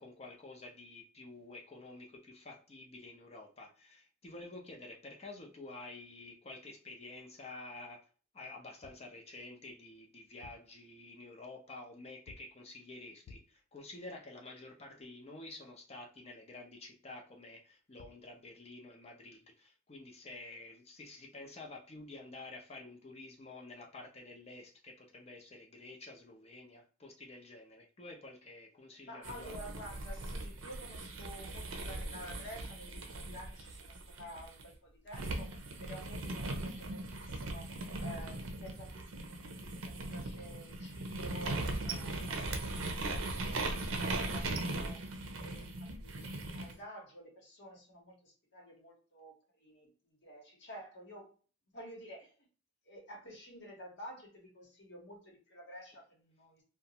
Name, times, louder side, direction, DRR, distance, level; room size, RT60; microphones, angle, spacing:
voice 1, 0.0-8.0 8.3-29.5, left 2 dB, 30° left, 1 dB, 0.7 m, -50 dB
sound 1, 8.8-9.1 10.2-10.8 12.3-12.6 13.2-13.7 17.7-17.8 18.0-18.3, left 4 dB, 80° left, 0.3 m, -56 dB
voice 2, 29.0-46.3 46.5-51.3 51.7-52.3 52.8-56.6, equal, 60° left, -2 dB, 1.0 m, -51 dB
Salad spinner, 29.2-34.6 35.1-46.7, right 2 dB, 75° right, 0.6 m, -39 dB
2.5 x 2.2 x 2.8 m, 0.38 s
head